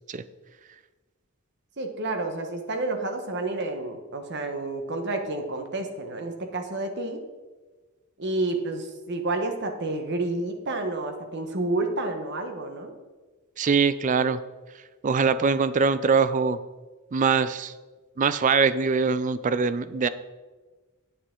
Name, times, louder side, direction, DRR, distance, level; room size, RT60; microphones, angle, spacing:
voice 1, 1.8-7.2 8.2-12.9, right 2 dB, 50° right, 5 dB, 1.1 m, -30 dB
voice 2, 13.6-14.4 15.0-16.6 17.1-17.7 18.2-20.1, right 5 dB, 35° right, 14 dB, 0.4 m, -22 dB
9.7 x 8.3 x 3.8 m, 1.3 s
head